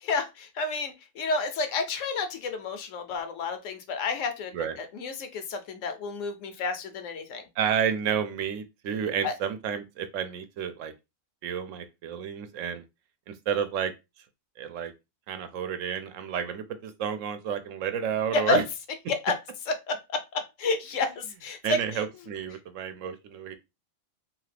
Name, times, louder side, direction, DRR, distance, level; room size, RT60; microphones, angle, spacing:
voice 1, 0.0-7.5 9.2-9.3 18.3-18.6 19.1-19.3 19.7-22.0, left 3 dB, 80° left, 1.0 m, -30 dB
voice 2, 7.6-10.9 11.4-12.8 13.3-13.9 14.6-14.9 15.3-18.6 21.6-23.6, right 8 dB, 75° right, 0.9 m, -31 dB
2.7 x 2.4 x 3.2 m
omnidirectional pair, 1.3 m